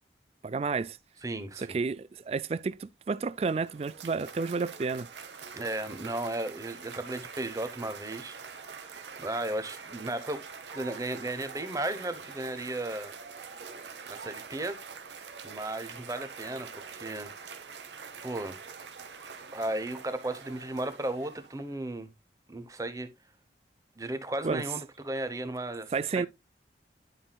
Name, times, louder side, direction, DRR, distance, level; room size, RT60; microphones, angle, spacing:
voice 1, 0.4-1.0 1.6-5.1 24.4-24.6 25.9-26.3, right 4 dB, 35° right, 0.3 m, -31 dB
voice 2, 1.2-1.8 5.5-10.4 10.7-13.1 14.1-14.8 15.4-17.3 18.2-18.6 19.5-22.1 22.5-23.1 24.0-26.3, right 1 dB, 20° right, 0.9 m, -35 dB
Cheering / Applause, 3.2-21.8, right 5 dB, 90° right, 1.1 m, -45 dB
11.0 x 5.6 x 2.3 m
head